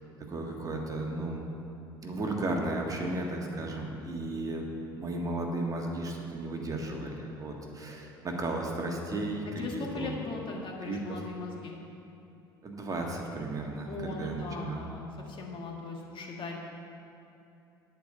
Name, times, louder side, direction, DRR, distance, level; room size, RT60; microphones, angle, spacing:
voice 1, 0.3-1.4 2.0-4.6 4.9-10.1 10.8-11.2 12.6-14.9, right 2 dB, 30° right, 0 dB, 1.7 m, -34 dB
voice 2, 9.6-11.7 13.9-16.6, left 3 dB, 40° left, 0 dB, 1.8 m, -39 dB
10.0 x 5.2 x 7.9 m, 2.8 s
figure-of-eight pair, 65°, 13 cm